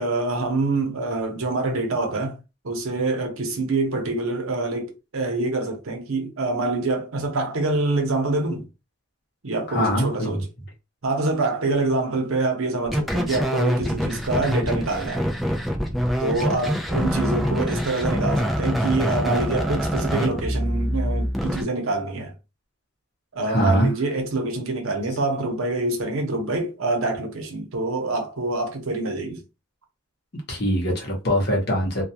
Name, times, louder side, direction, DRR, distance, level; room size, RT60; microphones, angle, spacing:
voice 1, 0.0-2.4 2.6-8.7 9.4-10.5 11.0-15.3 16.2-22.3 23.3-29.4, right 2 dB, 85° right, 0.8 m, -26 dB
voice 2, 9.7-10.4 23.5-23.9 30.5-32.0, equal, 50° left, 0.8 m, -22 dB
sound 1, 12.9-21.6, equal, ahead, 0.3 m, -25 dB
2.3 x 2.2 x 2.8 m
head